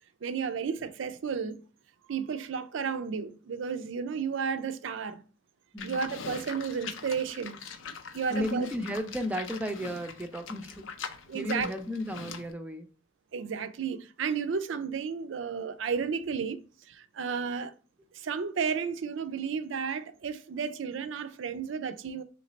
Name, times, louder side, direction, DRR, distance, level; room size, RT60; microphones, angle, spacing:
voice 1, 0.2-1.6 2.1-5.2 5.8-7.6 8.1-8.7 11.3-11.7 13.3-16.6 16.9-17.7 18.1-22.2, right 6 dB, 75° right, 0.4 m, -32 dB
Livestock farm animals working animals, 5.8-12.5, left 5 dB, 90° left, 0.5 m, -43 dB
voice 2, 8.3-10.9 11.3-12.9, equal, 10° right, 0.5 m, -34 dB
3.2 x 3.2 x 3.9 m
head